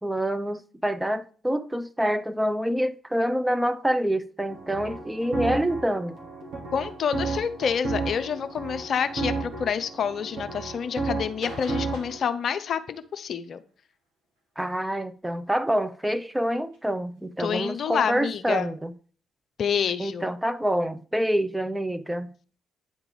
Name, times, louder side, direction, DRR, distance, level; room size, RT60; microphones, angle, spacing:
voice 1, 0.0-6.2 14.6-18.9 20.0-22.3, equal, 10° right, 0.6 m, -26 dB
sound 1, 4.5-12.2, right 3 dB, 65° right, 2.1 m, -33 dB
voice 2, 6.7-13.6 17.4-18.7 19.6-20.3, left 7 dB, 55° left, 0.5 m, -28 dB
sound 2, 8.1-8.3 9.0-9.7 11.2-13.2 14.8-15.4 16.1-16.2 16.7-16.8 17.2-17.3 17.4-17.5, right 1 dB, 85° right, 1.9 m, -47 dB
9.2 x 3.7 x 4.8 m
hypercardioid pair, 45°, 0 cm